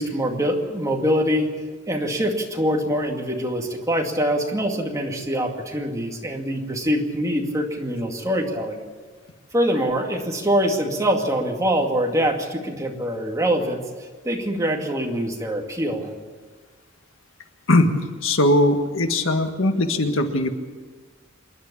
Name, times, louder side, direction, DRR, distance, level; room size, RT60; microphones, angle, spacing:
voice 1, 0.0-1.5 1.9-8.8 9.5-13.8 14.2-16.1, equal, 15° right, 1 dB, 2.3 m, -24 dB
voice 2, 17.7-20.5, left 1 dB, 80° left, 6 dB, 1.7 m, -20 dB
27.0 x 11.5 x 8.6 m, 1.5 s
head